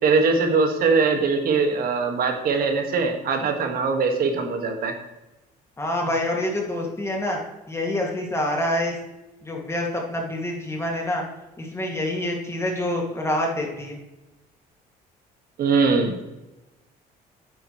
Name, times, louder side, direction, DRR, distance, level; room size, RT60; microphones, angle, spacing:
voice 1, 0.0-4.9 15.6-16.3, right 4 dB, 60° right, 4 dB, 1.7 m, -21 dB
voice 2, 5.8-7.4 7.7-9.0 9.4-11.2 11.6-14.0, left 1 dB, 15° left, -1 dB, 2.1 m, -26 dB
9.1 x 8.7 x 3.1 m, 1.0 s
cardioid pair, 110°, 17 cm